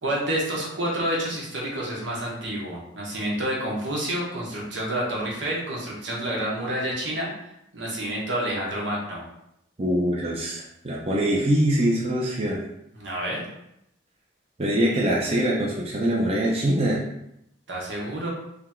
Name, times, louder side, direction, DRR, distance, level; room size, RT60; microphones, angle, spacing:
voice 1, 0.0-7.3 7.7-9.2 13.0-13.4 17.7-18.3, right 1 dB, 80° right, -4 dB, 1.2 m, -29 dB
voice 2, 9.8-12.6 14.6-17.0, right 1 dB, 35° right, -4 dB, 0.6 m, -23 dB
3.4 x 2.9 x 3.6 m, 0.81 s
head